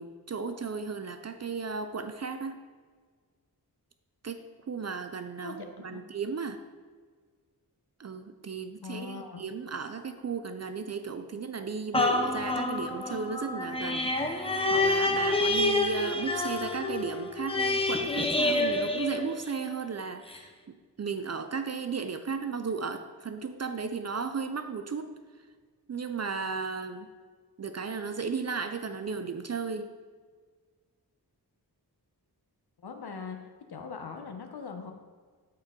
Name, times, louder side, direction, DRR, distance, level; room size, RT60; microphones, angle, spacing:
voice 1, 0.0-2.6 4.2-6.6 8.0-25.2 25.9-27.1 27.6-29.9, right 5 dB, 40° right, 8 dB, 0.5 m, -35 dB
voice 2, 5.4-6.0 8.8-9.4 32.8-34.9, left 5 dB, 75° left, 5 dB, 0.9 m, -41 dB
sound 1, 11.9-19.8 20.3-20.4, left 2 dB, 15° left, 0.6 m, -28 dB
12.5 x 4.4 x 3.7 m, 1.6 s
wide cardioid pair, 90°, 39 cm